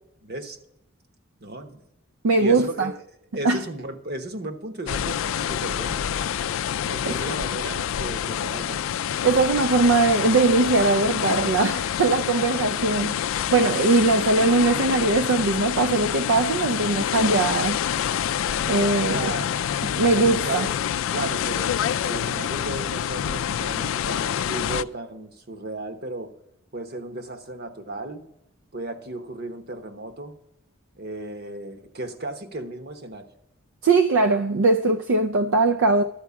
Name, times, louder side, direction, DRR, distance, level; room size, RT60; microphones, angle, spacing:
voice 1, 0.2-0.6 1.4-1.8 2.3-2.9 3.3-6.0 6.8-8.8 19.1-19.6 20.1-20.8 21.1-26.3 26.7-28.2 28.7-30.4 30.9-33.3, right 2 dB, 50° right, 1.1 m, -35 dB
voice 2, 2.2-2.9 3.4-3.6 9.2-17.8 18.7-19.3 20.0-20.7 33.8-36.0, right 3 dB, 65° right, 0.5 m, -21 dB
sound 1, 4.9-24.8, left 9 dB, 70° left, 0.3 m, -27 dB
12.5 x 4.7 x 8.3 m
head